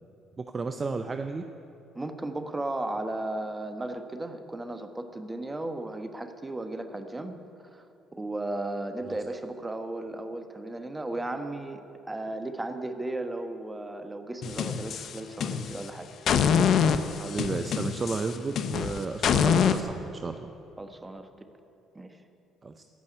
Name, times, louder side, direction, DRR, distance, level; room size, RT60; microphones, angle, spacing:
voice 1, 0.4-1.4 9.0-9.1 17.1-20.5 22.6-22.8, right 4 dB, 35° right, 7 dB, 0.6 m, -33 dB
voice 2, 1.9-7.4 7.7-7.8 8.1-16.1 20.8-21.3 21.9-22.2, right 2 dB, 20° right, 7 dB, 1.3 m, -35 dB
sound 1, 14.4-15.8 16.3-19.8, left 7 dB, 60° left, 0.7 m, -25 dB
16.0 x 5.5 x 9.9 m, 2.8 s
supercardioid pair, 65°, 0 cm